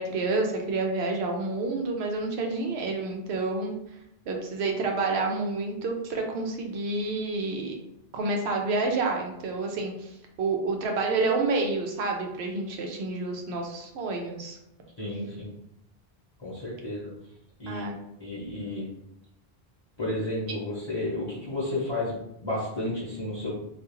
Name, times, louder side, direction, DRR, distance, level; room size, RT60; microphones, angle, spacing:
voice 1, 0.0-3.7 4.3-7.8 8.1-14.6 17.7-18.0, right 3 dB, 85° right, 2 dB, 0.8 m, -29 dB
voice 2, 15.0-15.5 16.4-17.1 17.6-18.9 20.0-23.5, left 1 dB, 30° left, -8 dB, 0.8 m, -32 dB
2.4 x 2.3 x 2.9 m, 0.81 s
omnidirectional pair, 1.1 m